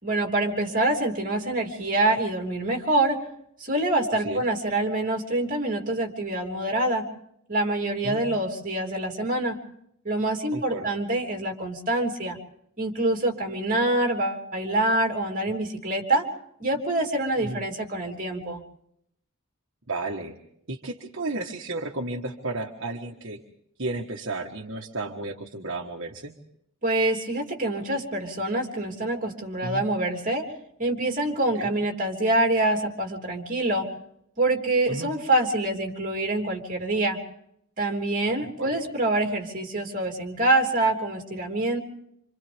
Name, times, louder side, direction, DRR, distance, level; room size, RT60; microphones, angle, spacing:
voice 1, 0.0-3.2 3.6-7.1 7.5-9.6 10.0-12.4 12.8-16.3 16.6-18.6 26.8-30.4 30.8-33.9 34.4-37.2 37.8-41.8, right 2 dB, 40° right, 3 dB, 3.3 m, -25 dB
voice 2, 4.1-4.4 8.0-8.2 10.5-10.9 17.4-17.6 19.9-20.4 20.7-23.4 23.8-26.4 29.6-29.8 31.5-31.7 34.9-35.1 38.4-38.8, right 2 dB, 60° right, 1 dB, 1.5 m, -33 dB
27.5 x 27.0 x 3.6 m, 0.75 s
head